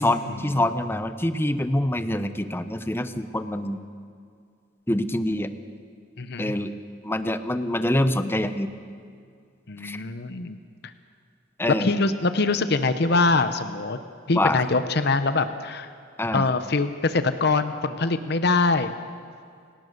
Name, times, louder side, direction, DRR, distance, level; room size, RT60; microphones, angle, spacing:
voice 1, 0.0-3.8 4.9-5.5 6.4-6.7 7.0-8.7 9.8-10.0 11.6-11.9 14.3-14.6 16.2-16.5, left 1 dB, 10° left, 10 dB, 0.8 m, -25 dB
voice 2, 6.2-6.5 9.7-10.6 10.8-10.9 11.8-14.0 14.3-15.9 16.3-18.9, left 3 dB, 55° left, 10 dB, 0.9 m, -24 dB
30.0 x 17.5 x 6.7 m, 2.3 s
head